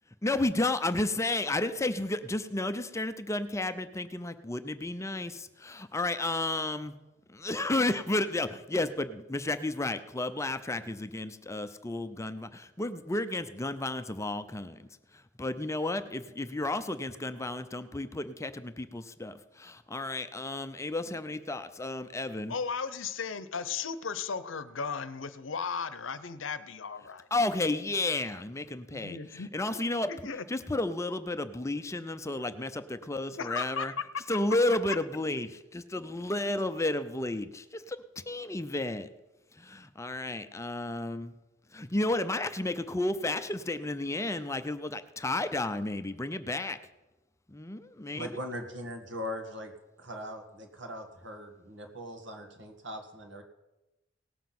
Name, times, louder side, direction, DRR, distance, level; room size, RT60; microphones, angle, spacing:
voice 1, 0.2-6.9 7.3-14.9 15.1-22.5 27.3-30.1 30.5-33.9 34.3-39.1 39.5-41.3 41.7-46.8 47.5-48.3, left 2 dB, 15° left, 10 dB, 0.6 m, -32 dB
voice 2, 22.5-27.3 28.9-29.5 30.1-30.4 33.4-34.2 34.9-35.0, left 5 dB, 80° left, 14 dB, 0.8 m, -35 dB
voice 3, 48.1-49.7 50.0-53.4, equal, 65° right, 5 dB, 1.8 m, -40 dB
18.0 x 7.4 x 6.0 m, 1.0 s
head